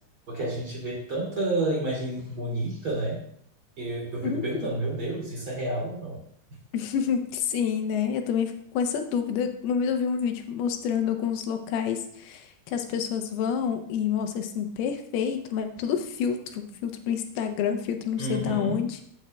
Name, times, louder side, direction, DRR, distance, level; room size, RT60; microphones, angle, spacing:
voice 1, 0.3-3.2 3.8-6.2 18.2-18.8, right 2 dB, 40° right, -4 dB, 2.5 m, -30 dB
voice 2, 4.2-4.7 6.7-19.0, left 7 dB, 85° left, 5 dB, 2.7 m, -28 dB
13.0 x 6.4 x 2.2 m, 0.65 s
omnidirectional pair, 4.5 m